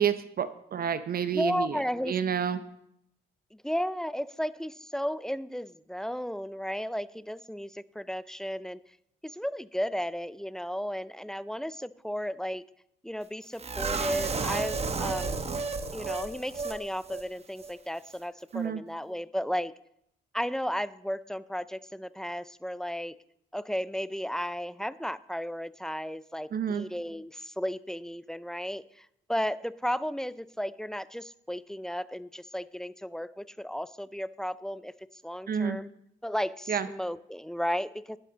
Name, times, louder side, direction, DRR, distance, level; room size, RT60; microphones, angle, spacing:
voice 1, 0.0-2.6 18.5-18.8 26.5-26.9 35.5-35.8 36.7-36.9, right 8 dB, 50° right, 12 dB, 0.7 m, -29 dB
voice 2, 1.3-2.2 3.6-8.8 9.2-12.6 13.0-15.5 15.9-19.7 20.3-23.2 23.5-34.9 35.2-35.9 36.2-38.2, equal, 5° left, 17 dB, 0.4 m, -34 dB
sound 1, 13.6-16.8 17.1-17.2 17.6-17.7, right 4 dB, 30° right, 1.0 m, -32 dB
11.5 x 11.0 x 3.9 m, 0.76 s
cardioid pair, 90°, 20 cm